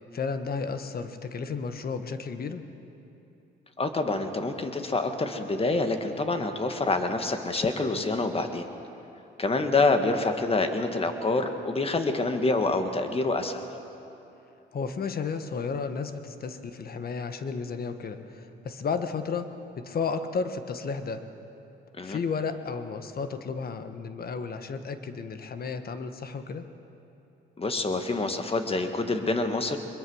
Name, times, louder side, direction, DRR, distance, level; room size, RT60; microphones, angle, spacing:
voice 1, 0.1-2.6 14.7-19.5 19.7-21.2 22.0-26.7, left 5 dB, 50° left, 9 dB, 1.4 m, -33 dB
voice 2, 3.8-8.7 9.4-13.6 22.0-22.2 27.6-29.8, left 3 dB, 30° left, 6 dB, 1.8 m, -27 dB
22.5 x 21.5 x 6.4 m, 2.9 s
cardioid pair, 90°, 20 cm